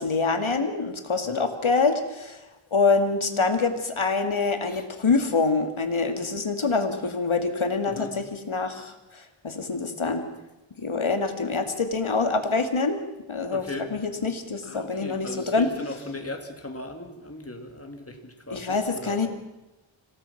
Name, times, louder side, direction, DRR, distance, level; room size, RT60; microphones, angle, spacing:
voice 1, 0.0-2.4 2.7-10.2 10.8-13.0 13.3-13.6 13.9-15.7 18.5-19.3, left 4 dB, 70° left, 6 dB, 2.5 m, -25 dB
voice 2, 13.5-13.9 14.6-19.3, left 2 dB, 30° left, 4 dB, 3.0 m, -38 dB
26.5 x 17.5 x 6.0 m, 1.0 s
wide cardioid pair, 60°, 50 cm